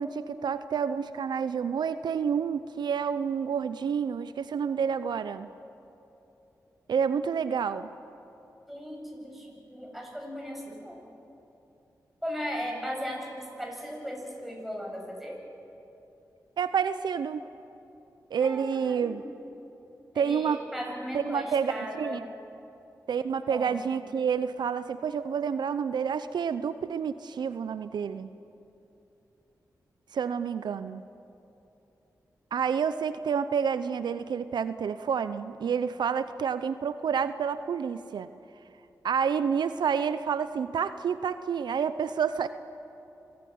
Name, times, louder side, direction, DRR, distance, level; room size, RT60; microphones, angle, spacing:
voice 1, 0.0-5.5 6.9-7.9 16.6-17.4 18.3-19.2 20.2-20.6 21.1-22.3 23.1-28.3 30.1-31.0 32.5-38.3 39.0-42.5, right 7 dB, 80° right, 12 dB, 0.7 m, -29 dB
voice 2, 8.7-11.0 12.2-15.4 18.4-19.3 20.1-22.3 23.5-23.9, equal, ahead, 0 dB, 7.8 m, -37 dB
26.0 x 15.5 x 9.5 m, 2.9 s
cardioid pair, 40°, 7 cm